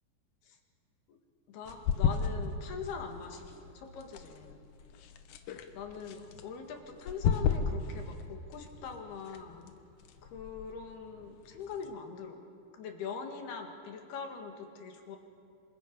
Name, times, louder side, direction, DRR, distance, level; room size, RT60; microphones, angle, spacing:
voice 1, 1.5-4.7 5.7-9.8 10.2-12.4 12.7-15.2, left 5 dB, 65° left, 3 dB, 3.5 m, -42 dB
sound 1, 1.6-11.9, left 6 dB, 85° left, 1.7 m, -36 dB
27.0 x 25.5 x 5.2 m, 2.5 s
omnidirectional pair, 5.1 m